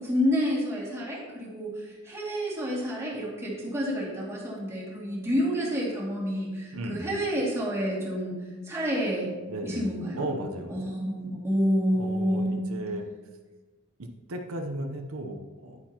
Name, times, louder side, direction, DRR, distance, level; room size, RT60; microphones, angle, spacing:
voice 1, 0.0-9.3 9.6-10.2 10.7-12.7, equal, 15° right, -6 dB, 2.4 m, -29 dB
voice 2, 6.7-7.1 9.5-9.8 10.1-10.8 11.9-13.1 14.0-15.8, right 1 dB, 90° right, 4 dB, 0.8 m, -35 dB
9.8 x 8.7 x 2.9 m, 1.3 s
head